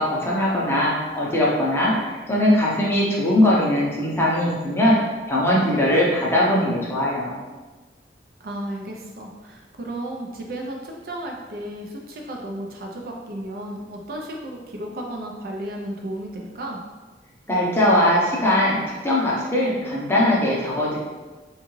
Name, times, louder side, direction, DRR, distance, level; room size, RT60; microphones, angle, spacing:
voice 1, 0.0-5.0 5.3-7.3 17.5-18.8 19.0-21.0, left 1 dB, 15° left, -6 dB, 0.6 m, -20 dB
voice 2, 8.4-16.8, right 1 dB, 55° right, 0 dB, 0.4 m, -33 dB
3.5 x 2.3 x 3.1 m, 1.3 s
head